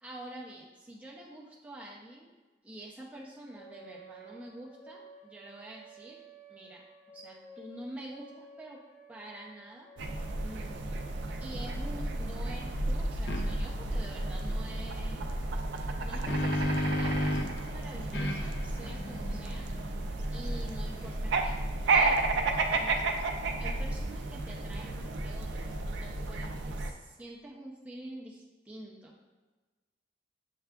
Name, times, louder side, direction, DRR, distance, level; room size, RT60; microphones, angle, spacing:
voice 1, 0.0-2.3 2.6-6.2 6.5-8.8 9.1-9.9 10.4-10.8 11.4-15.4 16.0-19.7 20.3-21.6 21.9-22.3 22.7-29.1, right 1 dB, 10° right, -3 dB, 0.5 m, -47 dB
sound 1, 3.5-12.5, right 3 dB, 45° left, 0.9 m, -54 dB
sound 2, 10.0-26.9, right 2 dB, 80° right, 0.4 m, -32 dB
sound 3, 13.3-13.4 15.8-17.6 18.1-21.5, left 1 dB, 70° left, 0.5 m, -34 dB
6.6 x 2.3 x 2.3 m, 1.3 s
head